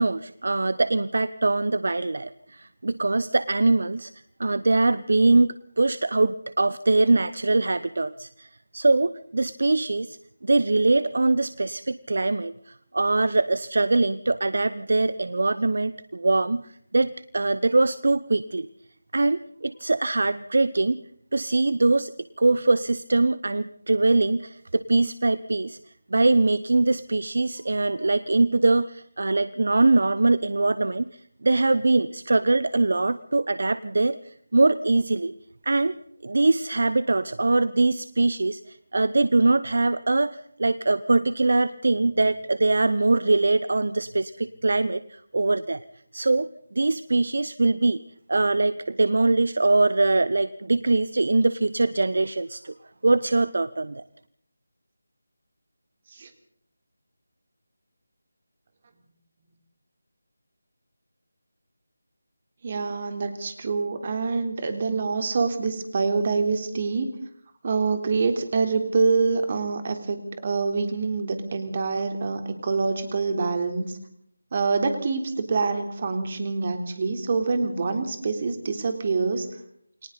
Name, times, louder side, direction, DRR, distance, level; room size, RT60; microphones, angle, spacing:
voice 1, 0.0-4.1 4.4-18.7 19.1-21.0 21.3-22.1 22.4-25.8 26.1-31.1 31.4-35.3 35.6-36.0 36.2-45.8 46.1-48.0 48.3-52.7 53.0-54.0, right 2 dB, 60° right, 16 dB, 0.8 m, -22 dB
voice 2, 62.6-67.1 67.6-74.0 74.5-79.5, right 4 dB, 35° right, 6 dB, 3.5 m, -26 dB
29.5 x 23.0 x 4.1 m, 0.67 s
figure-of-eight pair, 160°, 0 cm